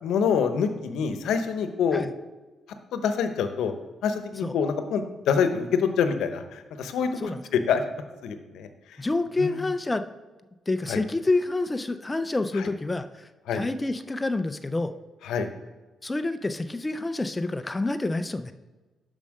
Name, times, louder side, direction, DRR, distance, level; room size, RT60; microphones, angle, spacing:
voice 1, 0.0-2.0 2.9-3.7 4.0-7.8 8.2-9.0 9.4-9.6 10.9-11.0 12.5-12.7 13.5-13.6 15.2-15.5, left 6 dB, 85° left, 8 dB, 0.8 m, -26 dB
voice 2, 9.0-10.0 10.7-14.9 16.0-18.5, left 2 dB, 15° left, 9 dB, 0.3 m, -28 dB
7.2 x 5.4 x 6.4 m, 1.2 s
cardioid pair, 155°, 0 cm